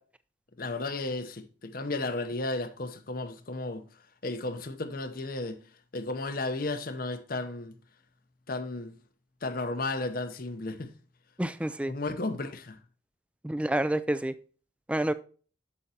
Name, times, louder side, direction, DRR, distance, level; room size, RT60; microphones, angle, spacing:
voice 1, 0.6-3.8 4.2-5.6 5.9-7.8 8.5-9.0 9.4-10.9 11.9-12.8, left 2 dB, 50° left, 0.7 m, -33 dB
voice 2, 11.4-11.9 13.4-14.3 14.9-15.1, right 1 dB, 5° right, 0.3 m, -28 dB
8.3 x 6.6 x 2.8 m
head